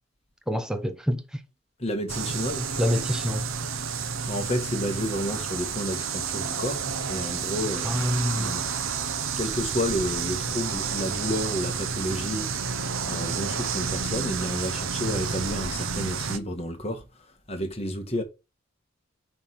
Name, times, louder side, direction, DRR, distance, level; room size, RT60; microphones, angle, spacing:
voice 1, 0.5-1.2 2.8-3.4 7.8-8.5, equal, 5° right, 0.8 m, -26 dB
voice 2, 1.8-2.7 4.3-8.1 8.3-8.6 9.4-12.5 13.1-17.0 17.5-18.2, equal, 30° left, 1.6 m, -31 dB
sound 1, 2.1-16.4, right 6 dB, 80° right, 0.8 m, -30 dB
8.7 x 3.4 x 5.8 m
head